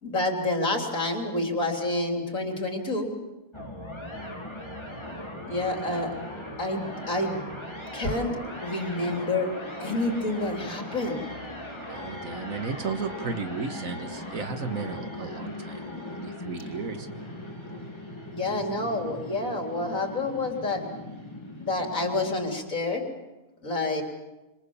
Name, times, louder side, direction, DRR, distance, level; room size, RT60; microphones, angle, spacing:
voice 1, 0.0-3.1 5.5-6.1 6.6-7.5 7.9-8.4 8.6-9.5 9.8-11.2 18.3-20.9 21.6-23.0 23.6-24.0, left 2 dB, 65° left, 2 dB, 4.0 m, -28 dB
sound 1, 3.5-22.3, left 1 dB, 20° left, 3.5 m, -39 dB
voice 2, 11.9-15.8 16.1-17.1, right 5 dB, 70° right, 8 dB, 2.0 m, -34 dB
27.0 x 26.0 x 7.3 m, 1.1 s
omnidirectional pair, 1.5 m